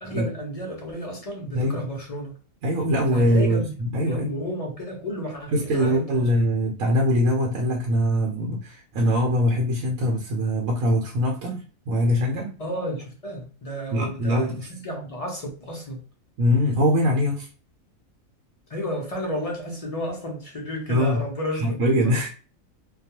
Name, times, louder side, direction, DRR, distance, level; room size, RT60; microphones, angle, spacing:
voice 1, 0.0-2.3 3.1-3.7 4.0-6.3 12.6-16.0 18.7-21.6 22.0-22.1, equal, 55° left, 0.4 m, -32 dB
voice 2, 2.6-4.3 5.5-12.5 13.9-14.7 16.4-17.5 20.9-21.2 21.6-22.3, equal, 75° right, 1.0 m, -22 dB
2.3 x 2.2 x 2.8 m
omnidirectional pair, 1.4 m